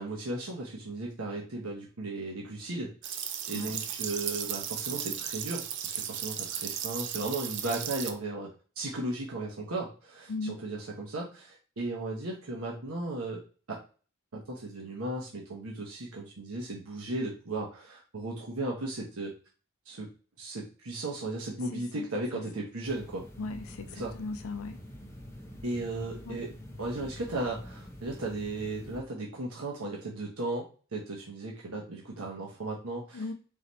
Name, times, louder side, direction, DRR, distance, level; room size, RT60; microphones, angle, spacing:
voice 1, 0.0-3.1 3.5-13.4 13.7-13.8 14.3-19.3 19.9-20.1 20.4-23.3 23.9-24.1 25.6-26.5 26.8-33.3, right 2 dB, 85° right, 1.0 m, -36 dB
sound 1, 3.0-8.1, right 9 dB, 55° right, 0.5 m, -35 dB
sound 2, 22.8-29.0, left 1 dB, 10° left, 0.6 m, -46 dB
voice 2, 23.4-23.9 24.2-24.8 26.3-26.4 33.2-33.3, left 3 dB, 75° left, 0.4 m, -36 dB
3.9 x 3.1 x 4.0 m
head